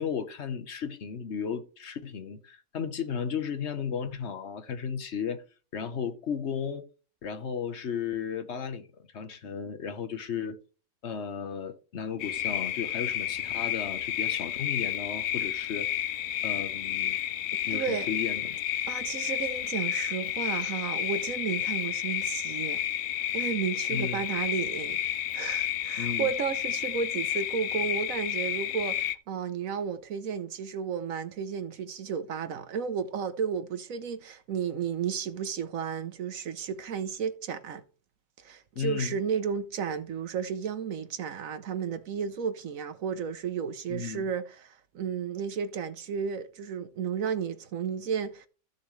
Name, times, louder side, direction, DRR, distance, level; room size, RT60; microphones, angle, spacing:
voice 1, 0.0-5.4 5.7-6.9 7.2-8.9 9.1-10.6 11.0-15.9 16.4-17.2 17.6-18.6 23.9-24.2 26.0-26.3 38.7-39.2 43.9-44.2, left 7 dB, 45° left, 1.0 m, -34 dB
sound 1, 12.2-29.1, left 11 dB, 75° left, 0.7 m, -31 dB
voice 2, 17.7-18.1 18.9-22.8 23.3-25.0 25.3-37.8 38.4-48.5, right 7 dB, 60° right, 1.0 m, -33 dB
14.0 x 6.8 x 3.2 m
omnidirectional pair, 1.9 m